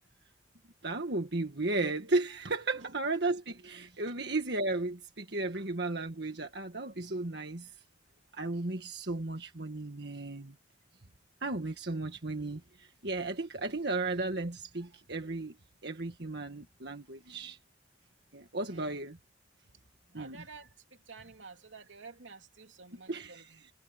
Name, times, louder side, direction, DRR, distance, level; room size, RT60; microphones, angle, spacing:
voice 1, 0.8-7.7 8.3-10.5 11.4-15.5 15.8-17.6 18.3-19.2 20.1-20.4 23.1-23.5, right 2 dB, 60° right, 1.7 m, -34 dB
voice 2, 18.7-19.0 20.1-23.7, right 4 dB, 80° right, 3.1 m, -51 dB
head